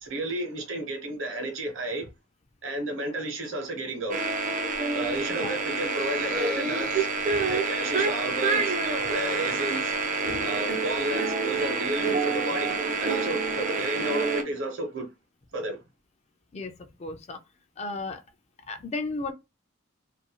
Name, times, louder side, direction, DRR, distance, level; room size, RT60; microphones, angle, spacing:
voice 1, 0.0-2.1 2.6-4.2 4.9-7.1 7.5-8.8 9.1-10.0 10.4-15.1 15.5-15.8, right 1 dB, 65° right, 0.9 m, -32 dB
sound 1, 4.1-14.4, right 3 dB, 40° right, 0.5 m, -27 dB
voice 2, 17.0-17.4 17.8-18.2 18.7-19.3, left 3 dB, 30° left, 0.3 m, -34 dB
2.5 x 2.3 x 2.8 m
head